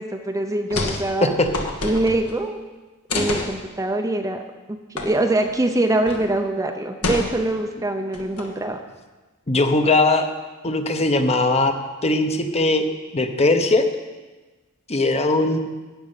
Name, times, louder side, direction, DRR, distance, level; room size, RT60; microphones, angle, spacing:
voice 1, 0.0-1.3 1.8-2.6 3.1-4.4 4.9-8.8, right 1 dB, 15° right, 5 dB, 0.6 m, -23 dB
sound 1, 0.7-1.0 1.3-2.4 3.1-3.5 5.0-5.1 5.4-5.5 6.1-6.3 7.0-7.6 8.1-8.6, left 2 dB, 75° left, 1.8 m, -27 dB
voice 2, 0.7-1.5 9.5-10.3 10.6-11.7 12.0-12.8 13.1-13.8 14.9-15.6, left 2 dB, 30° left, 6 dB, 1.0 m, -20 dB
13.0 x 5.3 x 9.0 m, 1.2 s
head